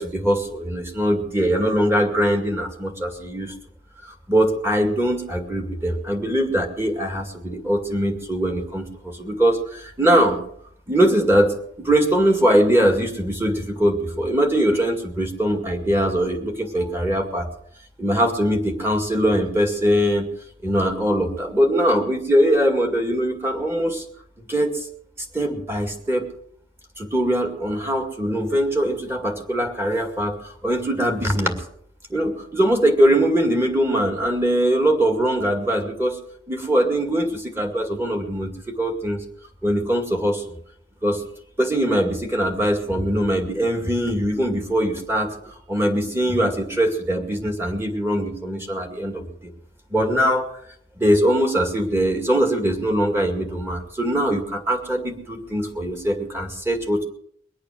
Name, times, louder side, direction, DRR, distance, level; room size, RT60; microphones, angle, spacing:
voice 1, 0.0-3.5 4.0-10.4 10.9-17.5 18.0-20.3 20.6-24.0 24.5-24.9 25.3-26.3 27.0-31.6 32.1-36.2 36.5-39.2 39.6-40.4 41.0-41.2 41.6-49.2 49.9-50.5 51.0-57.0, equal, 15° right, 4 dB, 2.2 m, -22 dB
22.5 x 8.7 x 6.5 m, 0.65 s
head